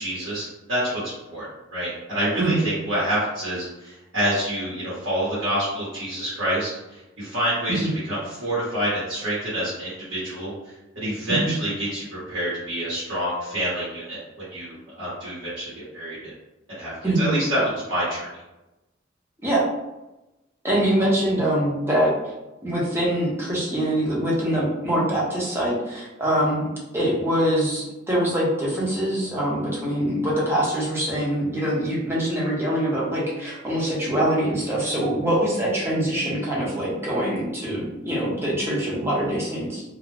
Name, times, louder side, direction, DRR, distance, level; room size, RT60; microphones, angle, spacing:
voice 1, 0.0-10.5 10.9-16.3 16.8-18.3, right 1 dB, 75° right, -10 dB, 1.1 m, -27 dB
voice 2, 17.0-17.3 19.4-19.6 20.6-22.3 22.6-26.6 26.9-39.8, right 1 dB, 15° right, -6 dB, 0.7 m, -24 dB
2.4 x 2.0 x 3.2 m, 1.0 s
head